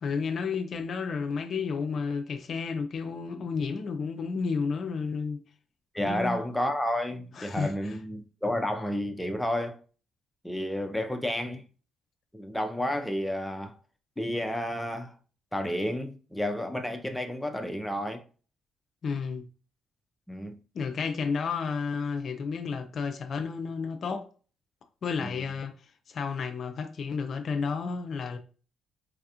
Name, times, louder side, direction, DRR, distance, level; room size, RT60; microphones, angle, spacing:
voice 1, 0.0-5.4 6.0-6.4 7.4-8.0 19.0-19.5 20.7-24.3 25.0-25.7 26.1-28.4, left 5 dB, 55° left, 0.5 m, -31 dB
voice 2, 5.9-9.8 10.4-11.6 12.3-13.8 14.2-15.1 15.5-18.2 20.3-20.6 25.2-25.4, left 1 dB, 5° left, 0.5 m, -31 dB
4.1 x 2.4 x 2.8 m
cardioid pair, 90°, 0 cm